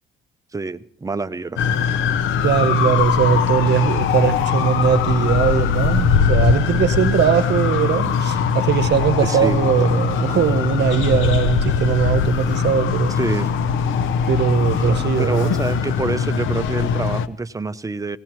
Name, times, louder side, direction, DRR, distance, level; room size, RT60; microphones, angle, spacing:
voice 1, 0.5-1.6 9.2-9.9 13.1-13.5 15.2-18.2, right 3 dB, 15° right, 12 dB, 0.6 m, -26 dB
sound 1, 1.6-17.3, left 6 dB, 85° left, 0.8 m, -20 dB
voice 2, 2.4-13.1 14.3-15.6, right 8 dB, 60° right, 12 dB, 1.0 m, -20 dB
sound 2, 4.3-12.8, left 2 dB, 60° left, 7.2 m, -41 dB
19.0 x 17.5 x 3.1 m, 0.65 s
cardioid pair, 90°, 20 cm